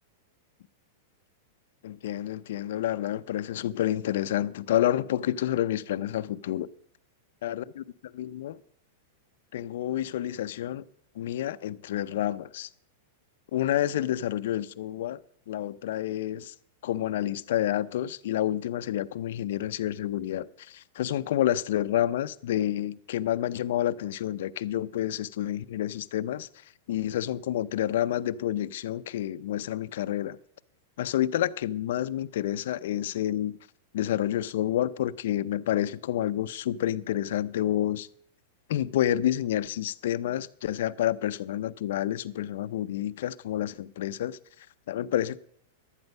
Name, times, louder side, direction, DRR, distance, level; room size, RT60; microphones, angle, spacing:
voice 1, 1.8-6.7 7.4-8.6 9.5-10.8 11.2-12.7 13.5-15.2 15.5-16.5 16.8-26.5 26.9-30.4 31.0-33.6 33.9-38.1 38.7-44.4 44.9-45.4, left 12 dB, 70° left, 0.5 m, -29 dB
11.5 x 9.5 x 5.3 m
hypercardioid pair, 130°, 0 cm